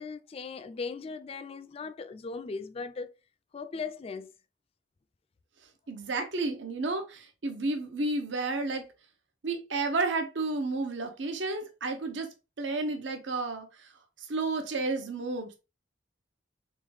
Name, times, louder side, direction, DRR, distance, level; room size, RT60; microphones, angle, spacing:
voice 1, 0.0-3.1 3.5-4.3, left 4 dB, 30° left, 0.3 m, -38 dB
voice 2, 5.9-8.9 9.4-12.3 12.6-13.9 14.2-15.6, right 3 dB, 80° right, 0.8 m, -31 dB
3.7 x 3.5 x 3.1 m
head